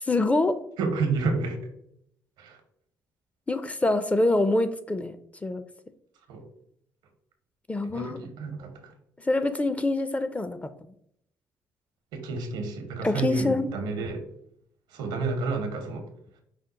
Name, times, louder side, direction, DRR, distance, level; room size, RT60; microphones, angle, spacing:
voice 1, 0.0-0.6 3.5-5.2 5.4-5.6 7.7-8.2 9.2-10.7 13.0-13.7, left 2 dB, 15° left, 11 dB, 0.4 m, -25 dB
voice 2, 0.8-1.6 2.4-2.6 6.3-6.4 7.9-8.9 12.1-14.2 14.9-16.1, right 4 dB, 90° right, 5 dB, 0.8 m, -30 dB
5.0 x 2.1 x 3.9 m, 0.70 s
supercardioid pair, 70°, 8 cm